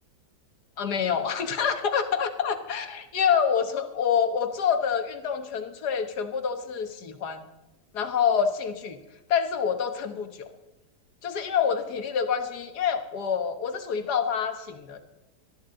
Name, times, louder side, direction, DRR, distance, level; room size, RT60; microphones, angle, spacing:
voice 1, 0.8-7.4 7.9-9.0 9.3-10.5 11.2-15.0, left 7 dB, 70° left, 8 dB, 1.8 m, -27 dB
19.5 x 13.5 x 3.8 m, 1.1 s
omnidirectional pair, 1.8 m